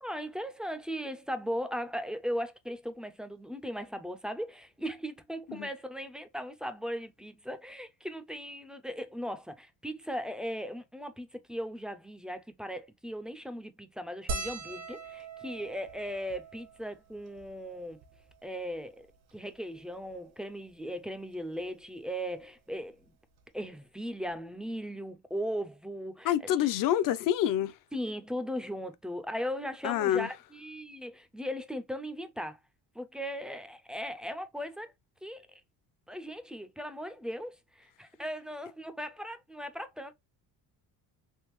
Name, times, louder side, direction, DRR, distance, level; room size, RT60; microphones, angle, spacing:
voice 1, 0.0-18.0 18.4-23.1 23.5-26.7 27.9-32.6 32.9-34.9 35.2-35.6 36.1-40.1, equal, ahead, 0.3 m, -38 dB
sound 1, 14.3-18.9 19.6-19.7 19.9-20.1 21.4-21.6 23.1-23.2 23.4-23.6, right 3 dB, 80° right, 1.3 m, -42 dB
voice 2, 26.2-27.8 29.8-30.3, left 11 dB, 55° left, 0.5 m, -27 dB
3.5 x 3.0 x 3.0 m
cardioid pair, 125°, 39 cm